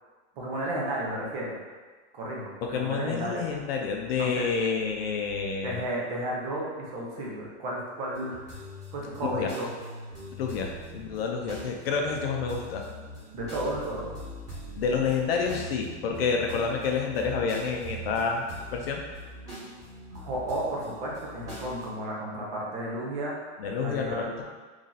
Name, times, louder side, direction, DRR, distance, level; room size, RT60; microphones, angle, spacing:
voice 1, 0.4-1.5 2.1-3.4 4.2-4.5 5.6-8.3 8.9-9.7 13.3-14.1 20.1-23.4 23.8-24.3, right 1 dB, 40° right, -4 dB, 0.9 m, -33 dB
voice 2, 2.7-5.8 9.3-9.5 10.4-12.9 14.8-18.4 18.7-19.0 23.6-24.3, left 5 dB, 50° left, 1 dB, 0.5 m, -29 dB
sound 1, 8.1-21.9, right 1 dB, 10° right, 1.2 m, -42 dB
3.1 x 2.6 x 3.9 m, 1.4 s
supercardioid pair, 170°, 37 cm